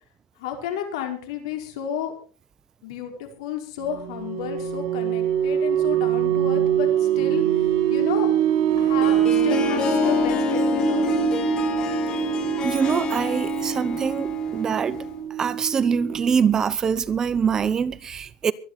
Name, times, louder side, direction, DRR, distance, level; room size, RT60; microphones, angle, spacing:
voice 1, 0.4-2.1 2.8-8.3 8.8-11.3, left 8 dB, 85° left, 5.1 m, -32 dB
sound 1, 3.8-16.3, right 11 dB, 85° right, 3.4 m, -24 dB
Harp, 8.7-15.2, left 5 dB, 30° left, 2.5 m, -27 dB
voice 2, 12.6-15.0 15.4-18.5, right 6 dB, 20° right, 0.7 m, -24 dB
23.5 x 10.0 x 4.3 m
supercardioid pair, 155°, 3 cm